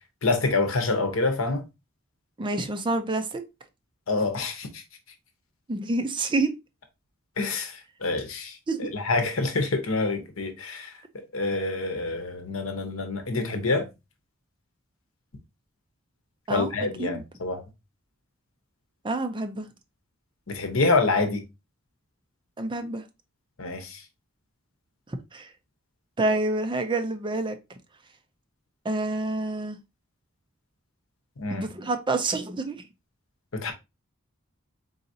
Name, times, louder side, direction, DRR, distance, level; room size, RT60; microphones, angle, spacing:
voice 1, 0.2-1.6 4.1-4.8 7.4-10.9 11.3-13.9 16.5-17.6 20.5-21.4 23.6-24.0 31.4-31.7 33.5-33.7, left 3 dB, 75° left, 0.9 m, -27 dB
voice 2, 2.4-3.4 5.7-6.5 8.7-8.9 16.5-16.7 17.0-17.2 19.0-19.7 22.6-23.0 25.3-25.5 26.2-27.6 28.8-29.8 31.5-32.8, right 2 dB, 25° right, 0.5 m, -27 dB
4.0 x 4.0 x 2.7 m
head